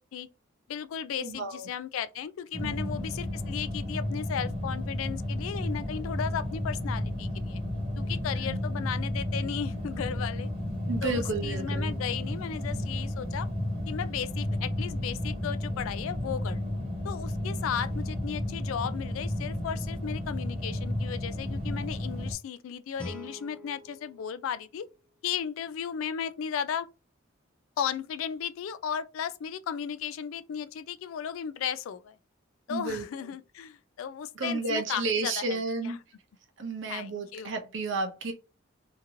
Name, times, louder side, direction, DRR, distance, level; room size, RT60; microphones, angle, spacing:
voice 1, 0.7-7.6 8.0-10.5 11.0-13.5 13.9-16.6 17.0-24.9 25.2-26.9 27.8-32.2 32.7-36.0 36.9-37.5, left 8 dB, 80° left, 0.3 m, -35 dB
voice 2, 1.2-1.7 2.6-2.9 8.4-8.6 10.9-11.9 32.7-33.3 34.3-36.0 36.6-38.3, right 3 dB, 65° right, 0.7 m, -32 dB
sound 1, 2.5-22.3, left 1 dB, 25° right, 1.0 m, -32 dB
Guitar, 23.0-25.7, left 1 dB, 5° left, 0.6 m, -46 dB
2.8 x 2.5 x 2.6 m
head